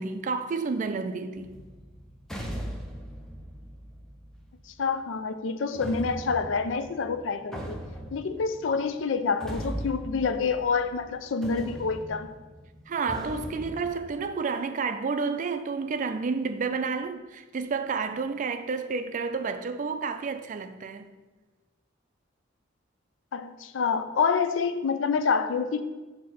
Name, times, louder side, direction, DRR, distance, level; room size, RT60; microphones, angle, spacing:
voice 1, 0.0-1.5 12.9-21.1, right 4 dB, 40° right, 0.4 m, -30 dB
sound 1, 1.4-4.7 5.7-11.1 11.4-14.2, equal, 5° left, 0.6 m, -39 dB
voice 2, 4.7-7.8 8.1-12.3 23.3-25.8, left 5 dB, 80° left, 0.4 m, -27 dB
6.3 x 2.8 x 5.6 m
head